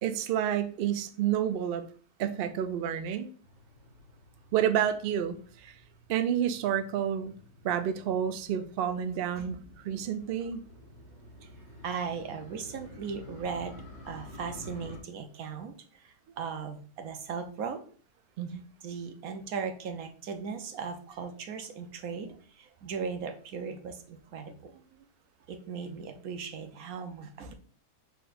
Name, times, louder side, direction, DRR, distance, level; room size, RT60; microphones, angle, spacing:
voice 1, 0.0-1.8 2.2-3.3 4.5-5.7 6.1-7.3 7.6-10.6 18.4-18.6, right 9 dB, 90° right, 0.5 m, -29 dB
Motorcycle, 3.4-15.0, left 1 dB, 30° left, 1.2 m, -51 dB
voice 2, 11.8-17.8 18.5-25.0 25.5-27.5, right 6 dB, 75° right, 1.2 m, -38 dB
5.7 x 3.5 x 2.5 m
omnidirectional pair, 1.6 m